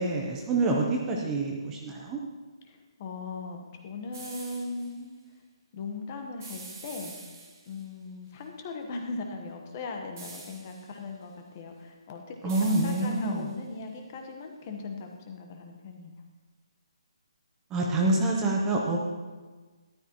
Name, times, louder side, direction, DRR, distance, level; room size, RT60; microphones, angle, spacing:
voice 1, 0.0-2.2 12.4-13.5 17.7-19.0, right 2 dB, 10° right, -1 dB, 0.8 m, -27 dB
voice 2, 2.7-5.1 5.7-7.2 7.7-16.1, left 3 dB, 25° left, 3 dB, 1.1 m, -39 dB
sound 1, 4.1-4.9 6.4-7.8 10.2-10.9 12.5-13.5, right 4 dB, 30° right, 2.2 m, -46 dB
13.5 x 12.0 x 3.0 m, 1.3 s
hypercardioid pair, 170°, 3 cm